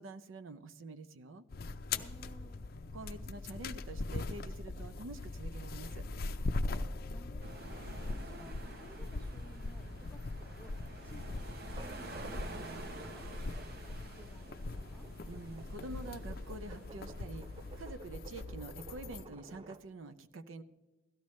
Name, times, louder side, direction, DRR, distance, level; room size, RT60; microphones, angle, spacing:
voice 1, 0.0-1.4 2.9-6.1 15.3-17.5 17.8-20.6, right 2 dB, 70° right, 11 dB, 0.6 m, -47 dB
sound 1, 1.5-19.3, left 3 dB, 50° left, 0.5 m, -41 dB
voice 2, 1.9-2.6 6.7-6.8 7.1-10.7 11.0-15.1, right 1 dB, 5° left, 4 dB, 0.8 m, -58 dB
sound 2, 7.4-17.8, right 2 dB, 50° right, 0.9 m, -50 dB
sound 3, 11.6-19.8, right 2 dB, 25° right, 0.5 m, -53 dB
17.0 x 13.5 x 3.2 m, 1.2 s
head